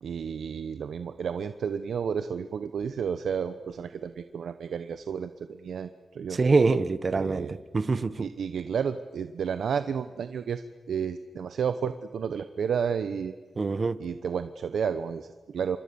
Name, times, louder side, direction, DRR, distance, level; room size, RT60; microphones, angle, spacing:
voice 1, 0.0-6.4 7.1-7.6 8.2-10.6 10.9-13.3 14.0-15.8, right 7 dB, 90° right, 0.9 m, -31 dB
voice 2, 6.4-8.3 13.6-14.0, right 4 dB, 40° right, 1.1 m, -24 dB
28.5 x 25.0 x 7.0 m
wide cardioid pair, 100°, 0 cm